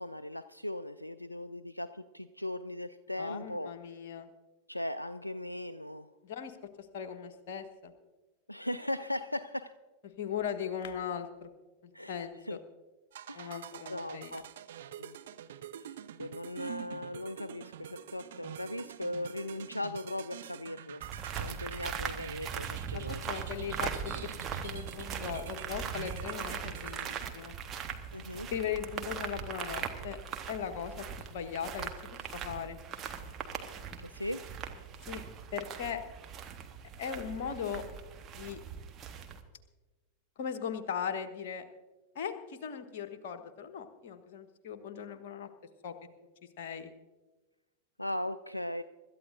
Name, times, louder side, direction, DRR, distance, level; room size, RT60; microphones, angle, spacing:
voice 1, 0.0-3.7 4.7-6.1 8.5-9.7 11.9-12.6 13.3-13.6 13.9-14.4 15.0-15.2 15.8-21.0 21.4-23.3 28.1-28.5 34.0-34.4 48.0-48.8, left 1 dB, 85° left, 12 dB, 0.3 m, -38 dB
voice 2, 3.2-4.3 6.2-6.6 6.9-7.9 10.2-11.5 11.8-12.6 13.3-14.3 22.9-24.3 24.6-27.5 28.5-30.2 30.5-32.8 35.1-35.2 35.5-36.0 37.0-37.8 38.3-38.6 40.4-41.6 42.1-45.5 45.8-45.9 46.6-46.9, left 8 dB, 50° left, 7 dB, 1.3 m, -38 dB
sound 1, 13.1-27.3, right 11 dB, 60° right, 0.6 m, -47 dB
sound 2, 21.0-39.4, right 7 dB, 30° right, 1.3 m, -40 dB
25.5 x 13.0 x 2.6 m, 1.2 s
figure-of-eight pair, 90°, 0 cm